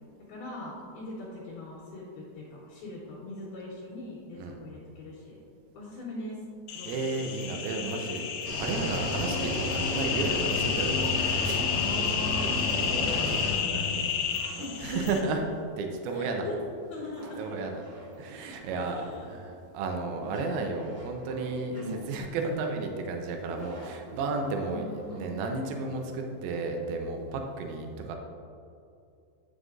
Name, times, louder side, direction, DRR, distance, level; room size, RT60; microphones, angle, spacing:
voice 1, 0.0-5.4 5.7-6.4 6.7-7.1 11.6-15.0 16.1-16.5 16.9-17.4 18.7-19.4 24.6-25.8, left 2 dB, 70° left, -8 dB, 3.0 m, -41 dB
sound 1, 6.7-15.2, left 8 dB, 85° left, 3.1 m, -31 dB
voice 2, 6.8-8.3 8.6-11.1 13.6-14.1 14.5-15.4 15.8-16.5 17.4-17.8 18.2-28.2, right 3 dB, 85° right, 3 dB, 2.4 m, -33 dB
Cricket / Waves surf, 8.4-13.6, left 1 dB, 65° right, 1.3 m, -32 dB
sound 2, 14.0-26.1, right 1 dB, 45° right, 1.5 m, -48 dB
9.7 x 6.7 x 2.5 m, 2.6 s
omnidirectional pair, 5.1 m